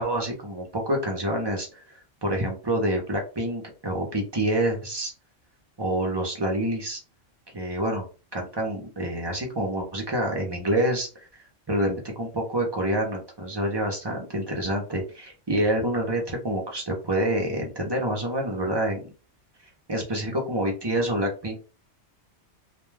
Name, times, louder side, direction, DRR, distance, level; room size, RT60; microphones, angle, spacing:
voice 1, 0.0-1.8 2.2-5.1 5.8-7.0 7.5-8.1 8.3-19.0 19.9-21.5, right 1 dB, 30° right, 1 dB, 0.5 m, -27 dB
2.3 x 2.2 x 3.1 m, 0.34 s
omnidirectional pair, 1.3 m